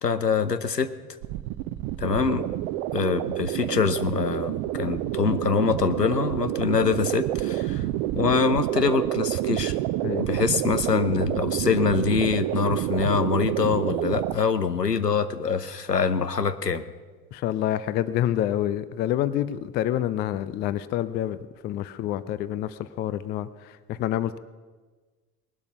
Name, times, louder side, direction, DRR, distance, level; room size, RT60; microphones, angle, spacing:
voice 1, 0.0-0.9 2.0-2.5 2.9-7.9 8.1-9.8 10.2-16.8, left 6 dB, 90° left, 12 dB, 0.8 m, -24 dB
sound 1, 1.2-14.3, right 14 dB, 40° right, 0.7 m, -28 dB
voice 2, 17.3-21.4 21.6-23.5 23.9-24.4, left 12 dB, 20° left, 16 dB, 0.4 m, -27 dB
19.5 x 12.0 x 5.8 m, 1.4 s
figure-of-eight pair, 70°, 47 cm